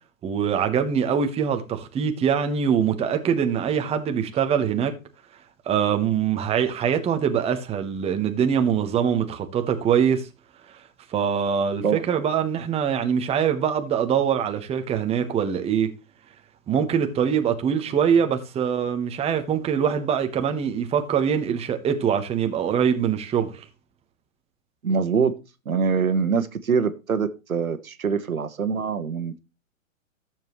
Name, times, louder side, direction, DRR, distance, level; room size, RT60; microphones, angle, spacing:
voice 1, 0.2-4.9 5.7-10.3 11.1-15.9 16.7-23.6, right 7 dB, 15° right, 1.1 m, -23 dB
voice 2, 24.8-25.3 25.6-29.4, right 5 dB, 90° right, 1.3 m, -24 dB
12.5 x 7.4 x 3.1 m
hypercardioid pair, 125°, 41 cm